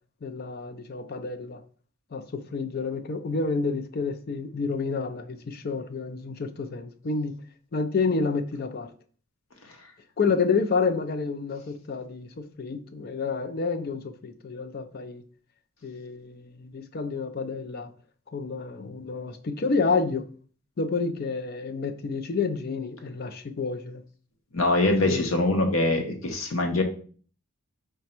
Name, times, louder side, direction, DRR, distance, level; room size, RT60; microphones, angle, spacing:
voice 1, 0.2-1.6 2.1-7.3 7.7-8.9 10.2-15.2 15.8-17.9 18.3-20.2 20.8-24.0 25.0-25.3, left 4 dB, 45° left, 0.4 m, -29 dB
voice 2, 24.5-26.8, left 2 dB, 65° left, 0.8 m, -23 dB
5.0 x 2.2 x 4.3 m
head